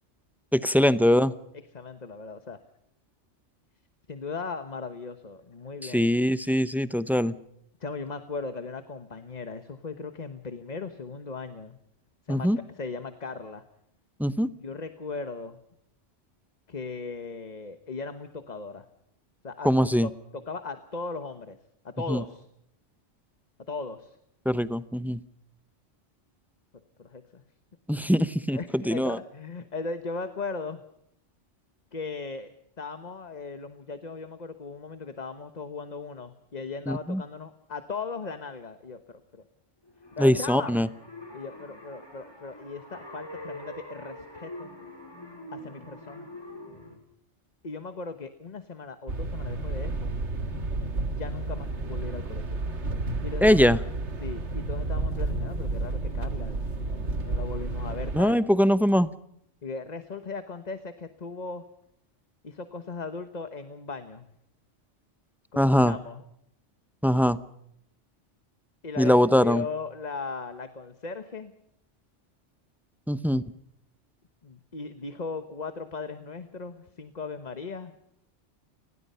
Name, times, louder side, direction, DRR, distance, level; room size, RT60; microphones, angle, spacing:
voice 1, 0.5-1.3 5.8-7.3 12.3-12.6 14.2-14.5 19.6-20.1 22.1-22.2 24.4-25.2 27.9-29.2 36.9-37.2 40.2-40.9 53.4-53.8 58.1-59.1 65.6-66.0 67.0-67.4 69.0-69.6 73.1-73.4, equal, ahead, 14 dB, 0.6 m, -22 dB
voice 2, 1.7-2.6 4.1-6.1 7.8-11.8 12.3-12.5 12.8-13.6 14.5-15.6 16.7-18.9 19.4-21.6 21.8-22.4 23.7-24.2 27.0-27.4 28.5-30.8 31.9-32.5 32.8-39.4 40.2-40.7 41.3-44.7 45.5-46.3 47.6-50.1 51.1-52.6 53.2-53.7 54.2-58.4 59.6-61.7 62.4-64.3 65.5-66.2 68.8-69.1 69.4-71.5 74.4-77.9, left 4 dB, 35° left, 10 dB, 1.2 m, -38 dB
sound 1, 39.8-47.0, left 1 dB, 20° left, 5.0 m, -44 dB
sound 2, 49.1-58.2, right 2 dB, 70° right, 2.1 m, -31 dB
29.5 x 20.0 x 5.6 m, 0.75 s
omnidirectional pair, 1.2 m